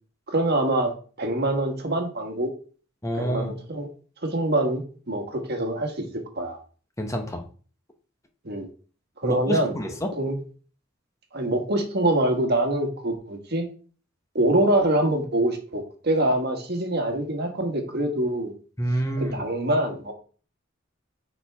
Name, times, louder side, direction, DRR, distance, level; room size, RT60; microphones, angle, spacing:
voice 1, 0.3-2.5 3.1-3.9 4.2-6.6 8.4-8.7 9.2-9.7 10.1-10.4 11.3-13.7 14.3-18.5 19.2-20.1, right 1 dB, 55° right, 4 dB, 1.5 m, -25 dB
voice 2, 3.0-3.5 7.0-7.4 9.2-10.1 18.8-19.4, right 1 dB, 15° left, 4 dB, 1.0 m, -27 dB
9.0 x 4.5 x 3.5 m, 0.40 s
head